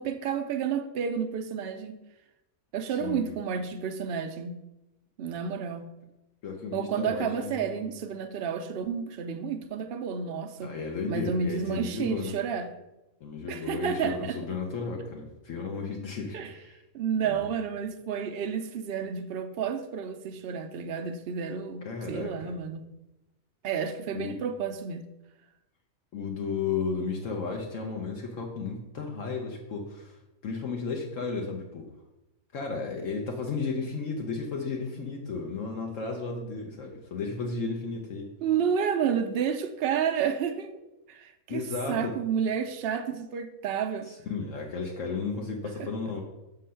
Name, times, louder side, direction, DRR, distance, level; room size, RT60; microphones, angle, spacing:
voice 1, 0.0-2.0 2.7-4.6 5.2-5.9 6.7-10.8 11.1-12.7 13.5-14.4 16.3-16.5 16.9-22.9 23.6-25.1 38.4-40.7 41.1-41.6 41.9-44.1, right 7 dB, 60° right, 0.7 m, -30 dB
voice 2, 2.9-3.4 6.4-7.9 10.6-12.4 13.2-16.8 17.2-17.5 21.8-22.5 24.1-24.4 26.1-31.9 32.5-38.3 41.5-42.1 44.3-46.2, left 4 dB, 70° left, 1.1 m, -34 dB
6.3 x 3.8 x 5.6 m
omnidirectional pair, 1.4 m